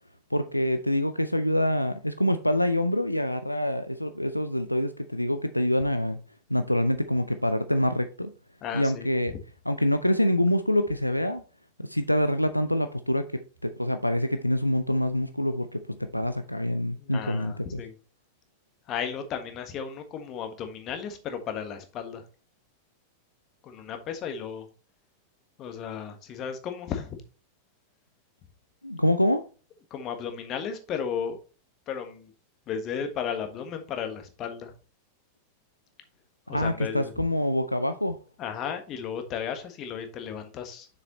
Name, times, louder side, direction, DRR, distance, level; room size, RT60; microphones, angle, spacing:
voice 1, 0.3-6.2 6.5-8.3 8.7-9.3 9.7-11.4 11.8-15.8 16.1-17.8 28.8-29.4 36.5-38.2, left 1 dB, 90° left, 0.4 m, -26 dB
voice 2, 8.6-9.1 17.0-17.9 18.9-22.2 23.6-24.7 25.6-27.2 29.9-31.4 31.9-32.3 32.7-34.7 36.5-37.2 38.4-40.9, left 7 dB, 35° left, 1.4 m, -34 dB
6.8 x 6.8 x 3.0 m
figure-of-eight pair, 90°, 0 cm